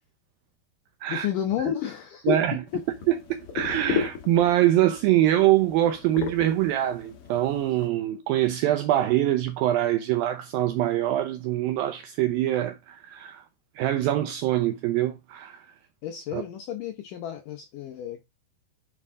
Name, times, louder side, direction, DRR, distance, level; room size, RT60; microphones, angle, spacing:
voice 1, 1.1-2.4 2.7-2.8 16.0-18.2, left 10 dB, 80° left, 1.9 m, -30 dB
voice 2, 2.3-2.6 3.1-3.2 3.5-13.4 13.8-15.6 16.3-16.4, right 13 dB, 80° right, 2.1 m, -24 dB
sound 1, 2.7-7.9, left 6 dB, 60° left, 1.5 m, -35 dB
8.7 x 5.2 x 3.6 m
omnidirectional pair, 4.9 m